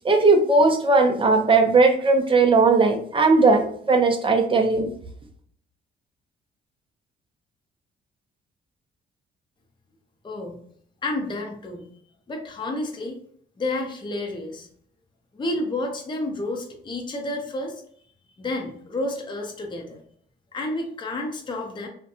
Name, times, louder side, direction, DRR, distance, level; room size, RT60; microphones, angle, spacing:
voice 1, 0.0-4.8, right 3 dB, 25° right, 3 dB, 0.5 m, -18 dB
voice 2, 10.2-10.6 11.0-11.8 12.3-13.2 13.6-14.7 15.3-17.8 18.4-20.0 20.5-21.9, left 2 dB, 25° left, 1 dB, 0.5 m, -30 dB
2.6 x 2.1 x 2.6 m, 0.63 s
cardioid pair, 90°, 20 cm